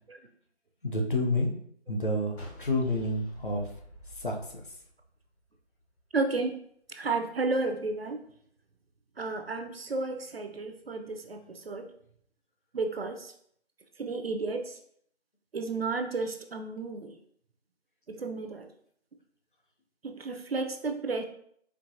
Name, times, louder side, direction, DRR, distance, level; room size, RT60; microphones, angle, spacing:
voice 1, 0.8-1.5 1.9-3.6 4.2-4.3, left 1 dB, 50° left, 0 dB, 0.6 m, -28 dB
sound 1, 2.4-5.6, right 1 dB, 65° left, 1.2 m, -47 dB
voice 2, 6.1-6.5 7.0-8.2 9.2-11.9 12.7-13.3 14.0-14.8 15.5-17.1 18.1-18.7 20.0-21.2, right 3 dB, 60° right, 5 dB, 0.5 m, -32 dB
4.5 x 2.4 x 2.7 m, 0.66 s
figure-of-eight pair, 165°, 34 cm